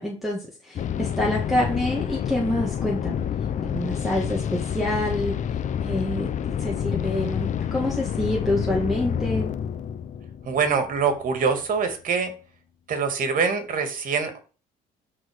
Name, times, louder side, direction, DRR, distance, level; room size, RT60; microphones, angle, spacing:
voice 1, 0.0-3.2 3.6-6.3 6.6-9.5, left 1 dB, ahead, -4 dB, 2.3 m, -27 dB
sound 1, 0.8-11.5, left 8 dB, 45° left, 0.8 m, -28 dB
voice 2, 10.5-12.3 12.9-14.4, right 5 dB, 55° right, 7 dB, 2.4 m, -24 dB
12.5 x 4.3 x 4.9 m, 0.36 s
cardioid pair, 110°, 17 cm